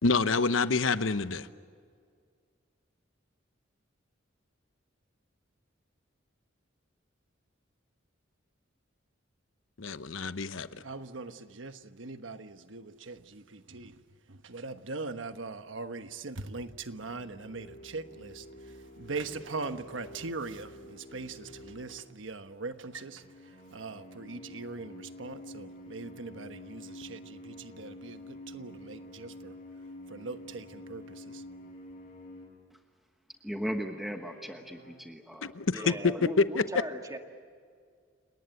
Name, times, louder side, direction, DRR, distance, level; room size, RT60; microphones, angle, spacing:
voice 1, 0.0-1.4 9.8-10.8 35.4-36.6, left 4 dB, 80° left, 13 dB, 0.9 m, -27 dB
voice 2, 10.7-14.0 14.3-29.5 30.1-31.4, right 3 dB, 70° right, 9 dB, 1.2 m, -41 dB
sound 1, 16.9-22.2 22.9-32.7 33.5-34.9, left 1 dB, 45° left, 5.7 m, -49 dB
voice 3, 33.4-35.5 35.8-36.3, equal, ahead, 4 dB, 1.2 m, -37 dB
voice 4, 35.7-37.2, right 1 dB, 20° right, 4 dB, 1.9 m, -38 dB
30.0 x 19.0 x 8.2 m, 2.1 s
head